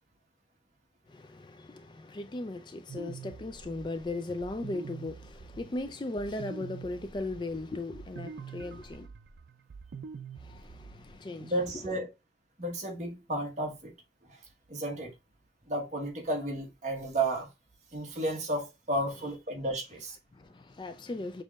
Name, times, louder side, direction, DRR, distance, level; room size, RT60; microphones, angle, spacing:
voice 1, 1.1-9.1 10.3-12.0 20.3-21.4, left 2 dB, 25° left, 0.3 m, -38 dB
sound 1, 2.9-11.2, right 5 dB, 75° right, 0.4 m, -46 dB
voice 2, 11.4-12.1 12.6-13.9 14.7-15.1 15.7-17.5 17.9-20.2, right 1 dB, 40° right, 1.2 m, -32 dB
6.3 x 3.0 x 2.3 m
head